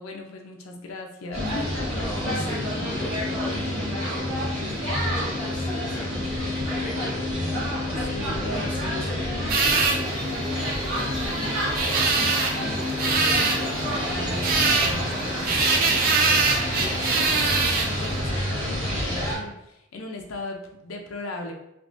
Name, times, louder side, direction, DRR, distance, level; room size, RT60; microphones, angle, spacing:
voice 1, 0.0-1.9 8.1-8.7 13.8-21.5, left 2 dB, 90° left, 3 dB, 0.5 m, -38 dB
sound 1, 1.3-19.4, left 1 dB, 80° right, 1.5 m, -28 dB
voice 2, 1.9-7.2 8.0-11.6, left 1 dB, 5° left, -5 dB, 0.9 m, -39 dB
sound 2, 9.5-18.2, right 4 dB, 45° right, 0.4 m, -25 dB
3.5 x 2.9 x 2.5 m, 0.84 s
head